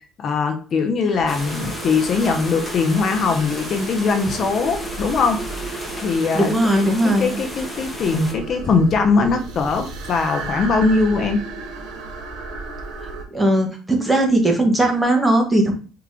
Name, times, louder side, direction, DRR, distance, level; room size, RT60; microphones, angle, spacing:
voice 1, 0.2-5.4 5.7-6.5 7.0-11.4, left 4 dB, 45° left, 5 dB, 0.7 m, -21 dB
sound 1, 1.1-13.2, right 3 dB, 80° right, 1.6 m, -34 dB
sound 2, 1.3-8.3, left 1 dB, 10° left, 1.2 m, -34 dB
voice 2, 6.3-7.4 13.0-15.7, right 1 dB, 10° right, 2 dB, 1.3 m, -18 dB
4.9 x 3.0 x 3.7 m, 0.38 s
cardioid pair, 125°, 0 cm